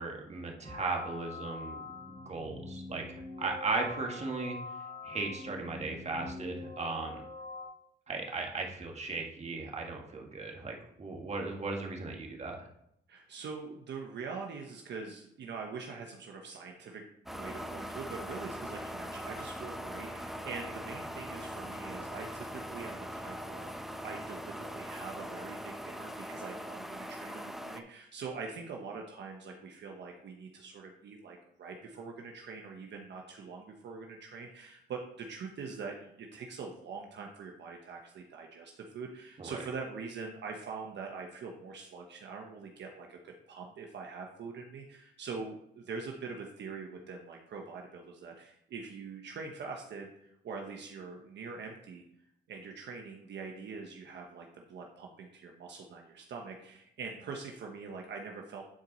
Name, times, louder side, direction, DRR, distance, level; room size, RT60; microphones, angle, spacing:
voice 1, 0.0-1.8 2.2-4.6 5.0-7.2 8.1-12.7 39.4-39.6, right 3 dB, 35° right, 1 dB, 1.8 m, -37 dB
sound 1, 0.6-7.7, left 3 dB, 35° left, 2.1 m, -44 dB
voice 2, 13.1-17.0 17.3-52.0 52.5-58.6, right 4 dB, 60° right, 1 dB, 1.1 m, -43 dB
sound 2, 17.3-27.8, equal, ahead, 0.8 m, -41 dB
10.5 x 4.6 x 4.1 m, 0.75 s
cardioid pair, 90°, 20 cm